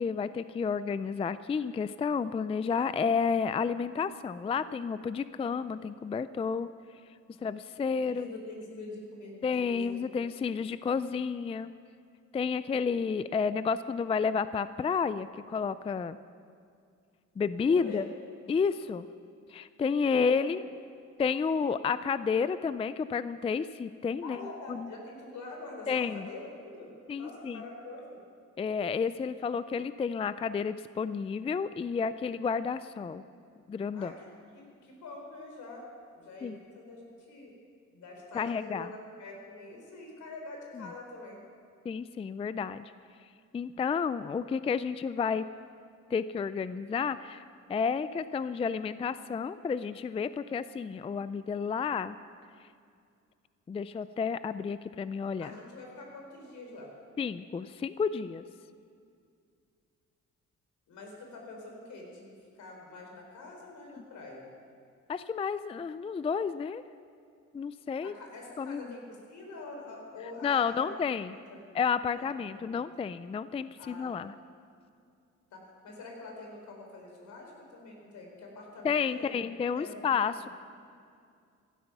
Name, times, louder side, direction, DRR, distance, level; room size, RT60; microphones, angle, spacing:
voice 1, 0.0-6.7 7.4-8.3 9.4-11.7 12.3-16.2 17.4-18.1 18.5-19.1 19.5-20.6 21.2-24.4 24.7-24.9 25.9-26.3 27.1-27.6 28.6-33.2 33.7-34.1 36.4-36.6 38.3-38.9 40.8-40.9 41.9-42.9 43.5-45.5 46.1-47.4 47.7-52.2 53.7-55.5 57.2-58.4 65.1-66.8 67.5-68.2 68.6-68.8 70.4-71.4 71.7-74.3 78.8-80.5, left 6 dB, 20° left, 14 dB, 0.3 m, -31 dB
voice 2, 8.0-9.4 9.7-10.0 17.7-18.0 20.1-20.3 20.6-20.7 24.2-28.2 33.9-34.3 34.5-35.9 36.1-37.5 37.9-41.4 55.4-56.9 60.9-64.5 68.0-70.9 71.2-71.8 72.1-72.3 72.5-72.9 73.8-74.2 75.5-80.4, left 2 dB, 70° left, 0 dB, 4.0 m, -45 dB
15.0 x 12.5 x 5.9 m, 2.3 s
cardioid pair, 90°, 30 cm